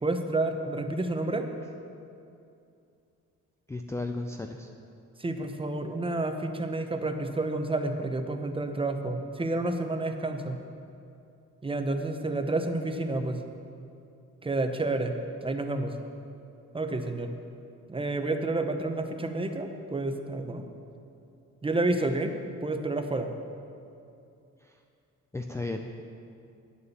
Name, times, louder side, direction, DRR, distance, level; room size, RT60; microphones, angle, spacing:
voice 1, 0.0-1.5 5.2-10.6 11.6-13.4 14.4-15.1 15.4-15.9 16.7-17.3 17.9-20.6 21.6-22.3 22.6-23.3, right 2 dB, 20° right, 6 dB, 0.9 m, -30 dB
voice 2, 3.7-4.7 24.6-24.8 25.3-26.0, left 2 dB, 10° left, 4 dB, 0.4 m, -35 dB
9.2 x 6.9 x 6.9 m, 2.6 s
cardioid pair, 90°, 30 cm